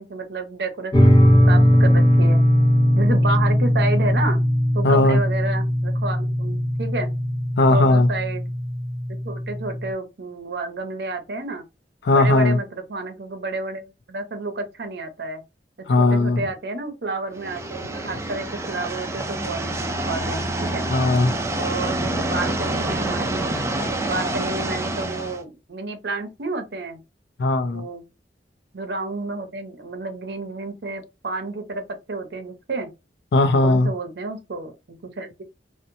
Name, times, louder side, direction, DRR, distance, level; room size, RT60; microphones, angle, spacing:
voice 1, 0.0-2.4 3.0-4.4 4.7-7.1 7.6-8.5 9.2-11.6 12.1-15.4 15.8-20.9 21.6-23.5 23.8-27.0 27.7-28.1 28.7-32.9 33.6-35.4, right 2 dB, 65° right, 0.7 m, -30 dB
sound 1, 0.9-9.9, equal, 20° left, 0.7 m, -19 dB
voice 2, 4.8-5.2 7.6-8.1 12.1-12.6 15.9-16.4 20.9-21.4 27.4-27.8 33.3-33.9, left 2 dB, 70° left, 0.4 m, -17 dB
sound 2, 17.3-25.4, right 1 dB, 15° right, 0.3 m, -27 dB
2.7 x 2.1 x 2.6 m
head